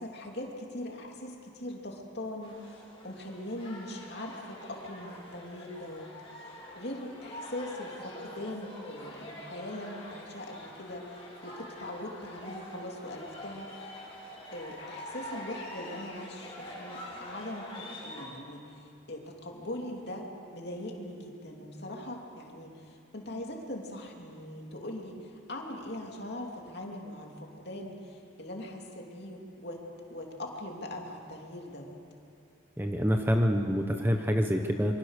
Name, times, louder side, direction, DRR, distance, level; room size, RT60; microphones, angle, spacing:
voice 1, 0.0-14.0 14.5-29.8 30.1-32.0, left 1 dB, 55° left, 1 dB, 3.0 m, -41 dB
sound 1, 2.4-18.2, left 1 dB, 30° left, 4.2 m, -45 dB
voice 2, 32.8-35.0, equal, 10° right, 4 dB, 1.0 m, -26 dB
26.5 x 24.0 x 6.6 m, 2.5 s
head